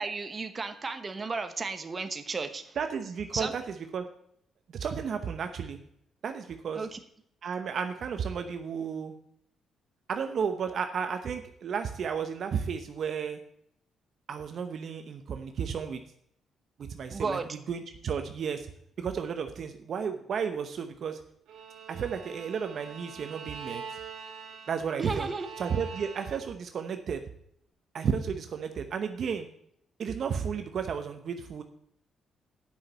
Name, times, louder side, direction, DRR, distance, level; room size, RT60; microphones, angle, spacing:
voice 1, 0.0-2.8 3.3-3.5 6.7-7.0 17.1-17.5 25.0-25.5, right 4 dB, 30° right, 8 dB, 1.1 m, -33 dB
voice 2, 2.8-4.1 4.7-5.8 6.2-6.9 7.4-9.1 10.1-13.4 14.3-16.0 16.8-18.7 19.0-21.2 21.9-23.8 24.7-25.3 25.6-27.2 27.9-29.5 30.0-31.6, right 6 dB, 60° right, 7 dB, 0.9 m, -33 dB
Bowed string instrument, 21.5-26.6, right 6 dB, 80° right, 2.5 m, -44 dB
8.6 x 6.1 x 7.8 m, 0.70 s
cardioid pair, 90°, 0 cm